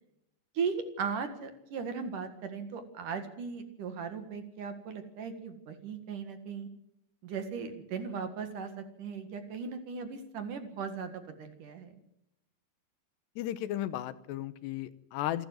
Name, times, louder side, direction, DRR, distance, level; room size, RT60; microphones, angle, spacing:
voice 1, 0.5-6.7 7.2-11.9, right 6 dB, 55° right, 8 dB, 2.9 m, -37 dB
voice 2, 13.4-15.5, left 13 dB, 85° left, 14 dB, 3.0 m, -35 dB
27.5 x 12.0 x 7.8 m, 0.83 s
omnidirectional pair, 4.9 m